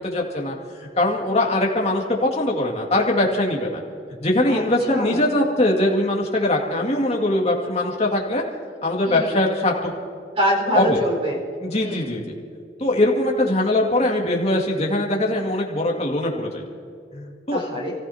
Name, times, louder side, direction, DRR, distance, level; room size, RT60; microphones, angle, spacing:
voice 1, 0.0-3.8 4.2-8.4 8.8-9.9 10.7-11.0 11.6-12.3 12.8-16.6 17.1-17.6, left 1 dB, 35° left, -1 dB, 2.2 m, -22 dB
voice 2, 4.9-5.2 9.0-9.4 10.3-11.4 11.8-12.1 17.5-17.9, equal, 35° right, -2 dB, 4.8 m, -24 dB
29.0 x 15.5 x 2.8 m, 2.4 s
head